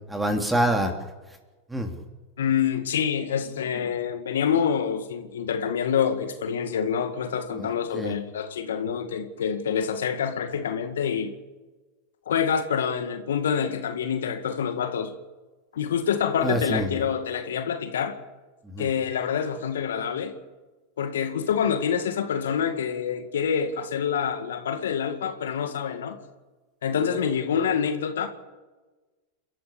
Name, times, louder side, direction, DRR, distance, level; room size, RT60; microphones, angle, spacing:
voice 1, 0.1-0.9 1.7-1.9 7.5-8.1 16.4-17.0 18.7-18.9, right 1 dB, 5° right, 3.4 m, -26 dB
voice 2, 2.4-11.3 12.3-15.1 15.7-18.2 18.8-20.3 21.0-26.2 26.8-28.3, left 7 dB, 75° left, 2.0 m, -26 dB
29.5 x 13.5 x 7.1 m
hypercardioid pair, 95°, 0 cm